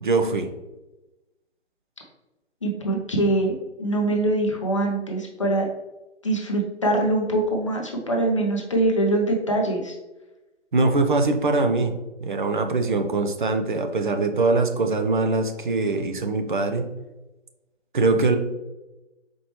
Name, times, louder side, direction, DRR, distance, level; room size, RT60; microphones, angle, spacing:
voice 1, 0.0-0.5 10.7-11.9 12.2-16.9 17.9-18.4, right 3 dB, 45° right, 6 dB, 0.4 m, -22 dB
voice 2, 2.6-5.7 6.2-10.0, right 1 dB, 25° left, 0 dB, 0.5 m, -23 dB
4.3 x 2.9 x 3.0 m, 1.0 s
figure-of-eight pair, 145°, 37 cm